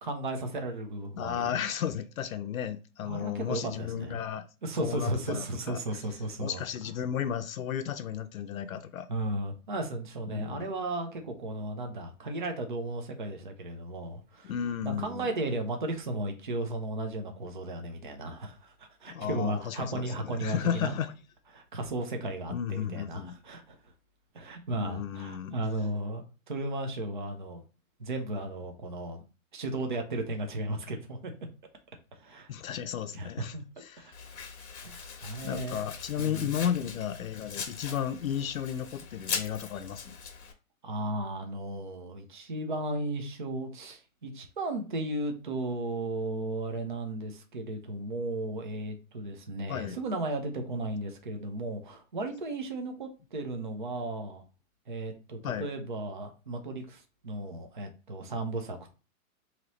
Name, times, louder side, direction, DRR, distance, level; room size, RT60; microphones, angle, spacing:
voice 1, 0.0-1.5 3.0-4.2 4.6-6.6 9.1-14.5 14.8-21.0 21.5-23.8 24.3-27.6 28.0-29.2 29.5-31.3 32.1-32.5 33.1-33.6 34.0-34.1 34.8-35.8 36.2-36.5 40.8-54.4 54.9-58.9, right 2 dB, 35° right, 0.5 m, -35 dB
voice 2, 1.2-4.5 4.8-5.8 6.4-9.1 10.3-10.7 14.4-15.3 19.1-21.1 22.5-23.4 24.7-25.5 32.5-34.1 35.4-40.1 49.7-50.0 55.4-55.7, left 9 dB, 70° left, 0.5 m, -34 dB
Domestic sounds home sounds, 34.1-40.5, left 6 dB, 50° left, 0.9 m, -40 dB
3.1 x 2.8 x 4.0 m
hypercardioid pair, 175°, 43 cm